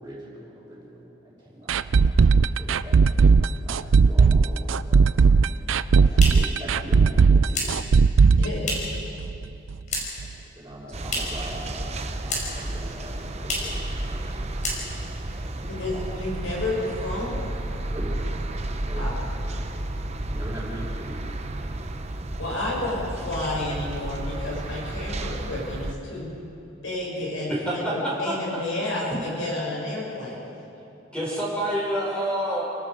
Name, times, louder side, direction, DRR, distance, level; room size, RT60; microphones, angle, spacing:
voice 1, 0.0-1.8 2.1-2.2 2.6-5.0 5.9-7.7 10.2-10.3 10.5-13.8 14.1-14.3 15.3-15.7 15.9-16.0 16.4-16.5 17.9-18.1 18.9-19.1 20.2-21.2, right 1 dB, 15° right, -11 dB, 6.4 m, -41 dB
sound 1, 1.7-9.4 9.7-9.8 10.2-10.3, right 5 dB, 85° right, 0.5 m, -17 dB
sound 2, 5.6-9.1 9.3-10.3 10.6-11.5 11.8-12.7 13.0-13.1 13.4-13.8 14.2-14.3 14.6-15.2, left 1 dB, 40° left, 5.0 m, -32 dB
voice 2, 8.4-8.7 15.7-17.4 18.9-19.1 22.4-26.3 26.8-27.8 28.2-29.1 29.4-30.4, left 2 dB, 85° left, -4 dB, 6.9 m, -30 dB
sound 3, 10.9-25.9, right 1 dB, 35° right, 0.9 m, -32 dB
voice 3, 27.5-27.9 28.2-28.3 31.1-32.6, right 1 dB, 5° left, -6 dB, 5.6 m, -27 dB
29.0 x 18.5 x 5.0 m, 2.7 s
head